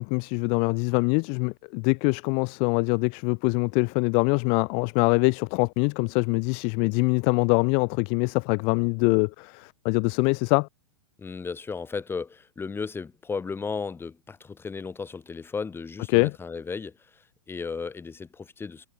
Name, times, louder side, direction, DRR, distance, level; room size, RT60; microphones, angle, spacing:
voice 1, 0.0-10.7 16.1-16.3, left 39 dB, 35° left, 0.4 m, -24 dB
voice 2, 11.2-18.9, left 5 dB, 15° left, 6.8 m, -35 dB
hypercardioid pair, 110°, 17 cm